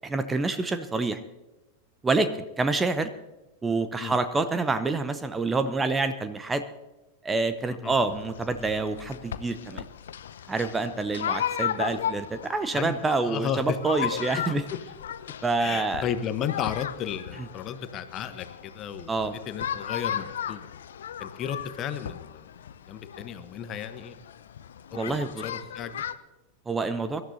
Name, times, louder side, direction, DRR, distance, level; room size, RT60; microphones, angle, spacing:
voice 1, 0.0-1.2 2.0-3.1 3.6-6.6 7.2-9.8 10.5-14.6 15.4-16.0 19.1-19.3 24.9-25.4 26.7-27.2, right 3 dB, 15° right, 11 dB, 0.8 m, -27 dB
sound 1, 8.1-26.1, left 9 dB, 65° left, 0.6 m, -36 dB
voice 2, 12.7-13.8 15.6-19.1 19.5-20.7 21.2-22.5 22.9-24.2 24.9-26.0, left 8 dB, 35° left, 10 dB, 1.1 m, -34 dB
24.0 x 12.5 x 2.8 m, 1.1 s
figure-of-eight pair, 90°, 0 cm